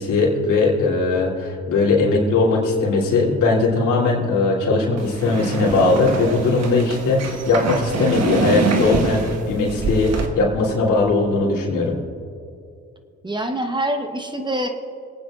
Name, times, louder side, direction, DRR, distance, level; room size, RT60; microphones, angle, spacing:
voice 1, 0.0-12.0, left 3 dB, 85° left, -4 dB, 3.0 m, -19 dB
sound 1, 5.0-10.3, right 3 dB, 60° right, 1.5 m, -25 dB
voice 2, 13.2-14.7, right 1 dB, 15° right, 5 dB, 1.0 m, -25 dB
26.0 x 9.1 x 2.5 m, 2.5 s
cardioid pair, 90°, 30 cm